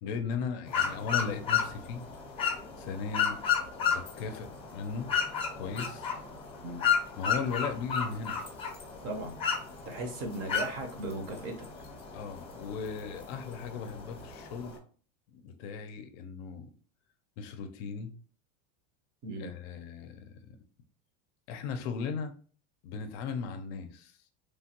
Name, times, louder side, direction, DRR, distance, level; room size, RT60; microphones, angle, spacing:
voice 1, 0.0-2.0 2.8-3.4 3.9-5.1 5.6-6.1 7.2-8.4 12.1-14.8 15.3-16.7 17.4-18.1 19.4-20.4 21.5-22.3 22.8-24.2, left 5 dB, 55° left, 8 dB, 0.5 m, -37 dB
sound 1, 0.7-14.8, left 7 dB, 15° left, 0.6 m, -33 dB
voice 2, 9.8-11.5 19.2-19.5, right 1 dB, 40° right, 4 dB, 0.7 m, -37 dB
3.2 x 2.2 x 2.8 m, 0.41 s
supercardioid pair, 155°, 37 cm